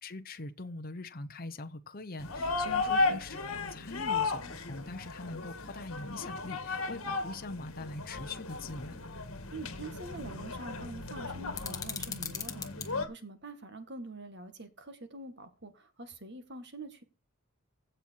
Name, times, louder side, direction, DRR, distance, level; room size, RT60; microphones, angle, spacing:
voice 1, 0.0-3.4 3.7-9.0, left 2 dB, 40° left, 1.0 m, -42 dB
sound 1, 2.2-13.1, left 3 dB, 65° left, 2.7 m, -35 dB
voice 2, 9.5-17.0, right 2 dB, 50° right, 2.0 m, -45 dB
sound 2, 11.5-12.9, left 6 dB, 15° left, 1.6 m, -39 dB
16.0 x 5.7 x 4.7 m
head